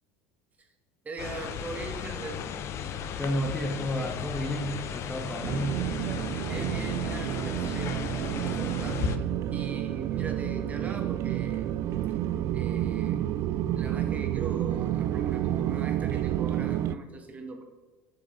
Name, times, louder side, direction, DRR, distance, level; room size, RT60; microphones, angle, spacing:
voice 1, 1.0-2.4 5.2-5.3 6.5-11.7 12.5-13.2 13.8-17.6, right 3 dB, 25° right, 4 dB, 1.5 m, -40 dB
sound 1, 1.2-9.2, left 8 dB, 50° left, 0.7 m, -36 dB
voice 2, 3.2-5.9, equal, 10° left, 3 dB, 1.1 m, -31 dB
sound 2, 5.4-16.9, right 12 dB, 55° right, 0.3 m, -30 dB
7.7 x 6.4 x 3.8 m, 1.2 s
supercardioid pair, 95°, 6 cm